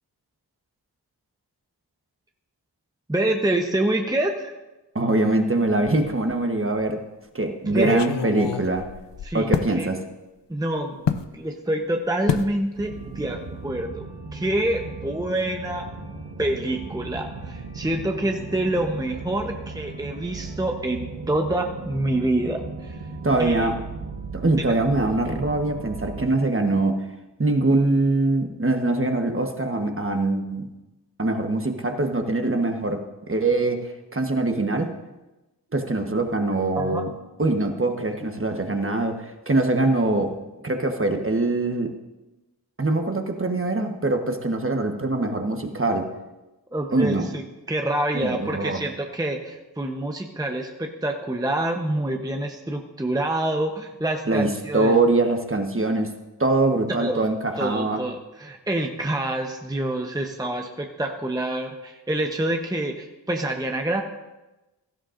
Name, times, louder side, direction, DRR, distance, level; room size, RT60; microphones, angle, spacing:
voice 1, 3.1-4.5 7.7-8.0 9.2-9.5 9.7-9.9 10.5-11.0 11.3-14.1 14.3-15.9 16.4-23.0 23.4-23.7 36.8-37.0 46.7-47.4 47.7-55.0 56.9-57.3 57.6-64.0, right 1 dB, 10° right, 3 dB, 0.9 m, -26 dB
voice 2, 4.9-7.0 7.3-8.9 9.3-10.0 23.2-23.8 24.3-27.1 27.4-30.7 31.2-34.9 35.7-37.1 37.4-40.4 40.6-41.9 42.8-46.1 46.9-47.3 48.1-48.8 54.3-56.1 56.4-58.0, right 2 dB, 30° right, 5 dB, 1.2 m, -23 dB
sound 1, 5.8-6.4 6.8-6.9 7.7-9.8 11.1-11.3 12.3-12.6 12.9-13.2 13.5-13.6, left 8 dB, 80° left, 0.7 m, -28 dB
sound 2, 12.7-26.3, right 3 dB, 75° right, 1.5 m, -37 dB
16.5 x 13.0 x 2.6 m, 1.1 s
wide cardioid pair, 65°, 42 cm